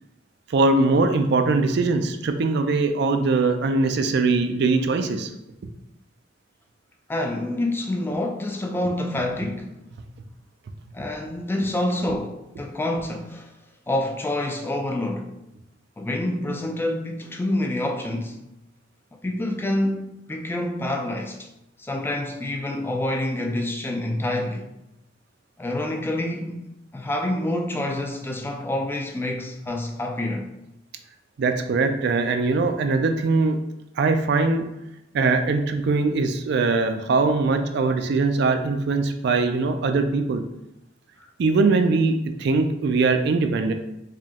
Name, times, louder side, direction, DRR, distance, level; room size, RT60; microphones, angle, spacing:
voice 1, 0.5-5.3 5.6-5.7 31.4-33.6 34.0-34.7 35.1-40.4 41.4-43.7, right 3 dB, 65° right, 0.4 m, -21 dB
voice 2, 7.1-9.7 10.9-13.5 13.9-15.3 16.0-18.4 19.2-21.5 21.8-24.7 25.6-26.7 26.9-30.5, left 1 dB, 10° left, 0.3 m, -27 dB
4.9 x 2.3 x 2.8 m
head